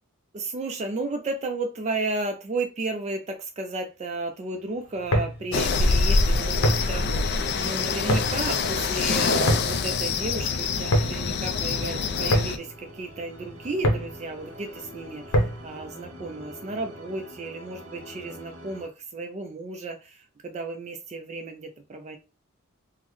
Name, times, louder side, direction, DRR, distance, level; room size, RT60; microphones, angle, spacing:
voice 1, 0.3-15.4 15.6-20.2 20.4-22.2, right 3 dB, 30° right, 0.3 m, -33 dB
sound 1, 4.5-18.9, equal, 60° right, 0.7 m, -47 dB
sound 2, 4.9-15.8, equal, 65° left, 0.7 m, -28 dB
sound 3, 5.5-12.6, left 4 dB, 50° left, 0.3 m, -25 dB
3.7 x 2.0 x 3.1 m
head